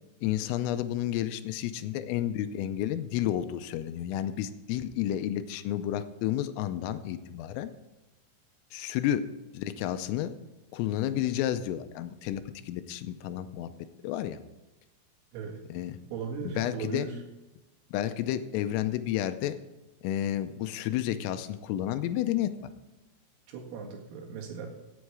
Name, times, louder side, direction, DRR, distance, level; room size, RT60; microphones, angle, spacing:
voice 1, 0.2-7.7 8.7-9.2 9.5-10.4 10.7-13.7 14.0-14.4 15.7-16.0 16.4-17.1 17.9-19.6 20.0-22.5, left 12 dB, 85° left, 11 dB, 3.3 m, -31 dB
voice 2, 16.1-17.2 23.5-24.7, right 6 dB, 80° right, 1 dB, 4.6 m, -37 dB
16.5 x 8.4 x 4.8 m, 1.1 s
omnidirectional pair, 5.9 m